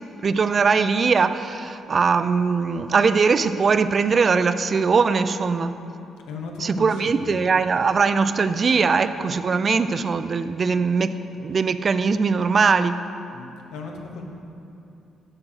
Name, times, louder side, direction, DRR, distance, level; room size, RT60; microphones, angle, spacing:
voice 1, 0.2-5.7 6.6-11.1 11.4-13.0, right 5 dB, 40° right, 12 dB, 0.3 m, -21 dB
voice 2, 6.3-7.4 13.3-14.2, left 4 dB, 90° left, 2 dB, 1.0 m, -36 dB
7.6 x 5.0 x 6.3 m, 2.8 s
cardioid pair, 90°, 0 cm